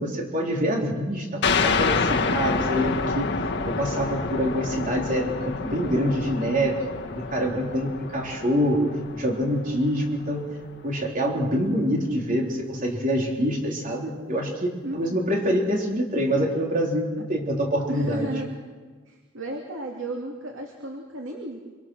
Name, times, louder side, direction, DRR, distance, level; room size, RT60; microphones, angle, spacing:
voice 1, 0.0-3.3 3.8-8.9 9.1-10.5 10.8-18.3, equal, 40° right, -1 dB, 3.8 m, -25 dB
sound 1, 1.4-10.6, left 4 dB, 55° left, 2.1 m, -28 dB
voice 2, 14.8-15.2 17.9-18.6 19.1-21.6, right 1 dB, 65° right, 0 dB, 2.8 m, -34 dB
27.0 x 26.5 x 6.4 m, 1.5 s
head